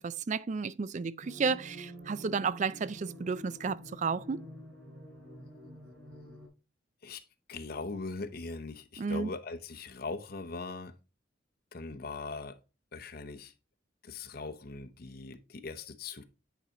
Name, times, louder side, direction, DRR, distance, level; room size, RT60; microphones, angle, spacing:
voice 1, 0.0-4.4 9.0-9.3, right 5 dB, 40° right, 0.4 m, -32 dB
sound 1, 1.2-6.5, equal, 85° right, 3.9 m, -48 dB
voice 2, 7.5-10.9 11.7-12.6 12.9-13.5 14.0-16.2, left 3 dB, 50° left, 0.8 m, -40 dB
9.2 x 4.9 x 2.8 m
head